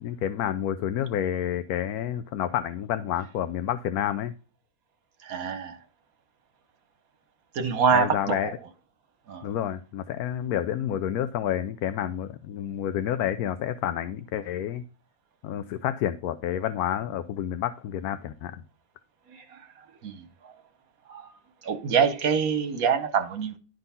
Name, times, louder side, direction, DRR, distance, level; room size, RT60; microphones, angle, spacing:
voice 1, 0.0-4.3 7.9-8.6 9.4-14.8 15.4-18.6, left 10 dB, 90° left, 1.1 m, -29 dB
voice 2, 5.2-5.8 7.5-8.5 9.3-9.5 19.3-19.6 20.0-20.5 21.1-21.2 21.6-23.6, right 6 dB, 70° right, 1.4 m, -26 dB
11.5 x 3.9 x 5.6 m
omnidirectional pair, 1.5 m